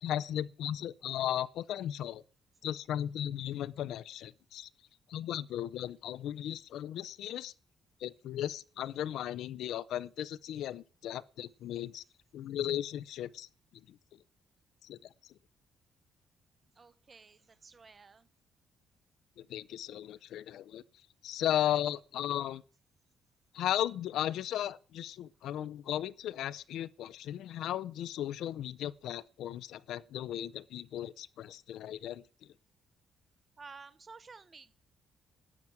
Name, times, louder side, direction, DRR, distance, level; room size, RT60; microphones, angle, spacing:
voice 1, 0.0-2.2 2.6-4.7 5.1-7.5 8.0-12.0 12.3-13.5 13.9-14.0 14.8-15.3 19.4-20.8 21.2-22.6 23.5-32.2, left 11 dB, 80° left, 0.5 m, -36 dB
voice 2, 16.8-18.3 33.6-34.7, right 4 dB, 25° right, 0.8 m, -53 dB
13.0 x 6.1 x 9.2 m
cardioid pair, 150°, 0 cm